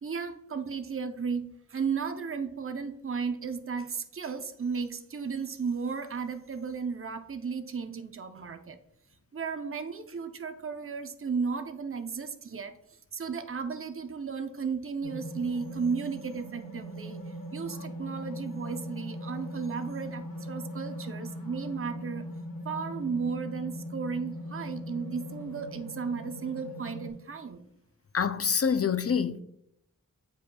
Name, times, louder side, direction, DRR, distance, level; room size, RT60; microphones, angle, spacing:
voice 1, 0.0-8.8 9.3-12.8 13.1-17.2 17.5-22.3 22.6-27.6, right 5 dB, 40° right, 0.6 m, -34 dB
sound 1, 15.0-27.1, equal, 85° left, 1.1 m, -40 dB
voice 2, 28.1-29.4, left 7 dB, 45° left, 0.4 m, -26 dB
8.2 x 5.1 x 2.3 m
wide cardioid pair, 40°, 35 cm